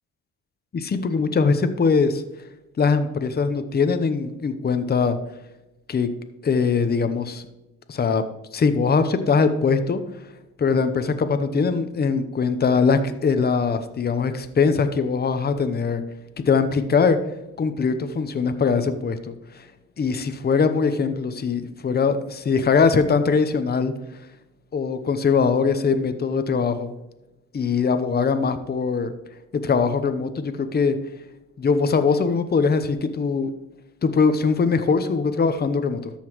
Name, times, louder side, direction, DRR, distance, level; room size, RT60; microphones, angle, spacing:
voice 1, 0.7-2.2 2.8-5.2 5.9-6.1 6.4-7.4 7.9-8.3 8.5-10.0 10.6-16.0 16.4-17.2 17.6-19.6 20.0-23.9 24.7-26.9 27.5-29.1 29.5-31.0 31.6-33.5 34.0-36.1, left 5 dB, 35° left, 9 dB, 0.8 m, -21 dB
13.5 x 5.6 x 3.1 m, 0.97 s
cardioid pair, 90°, 30 cm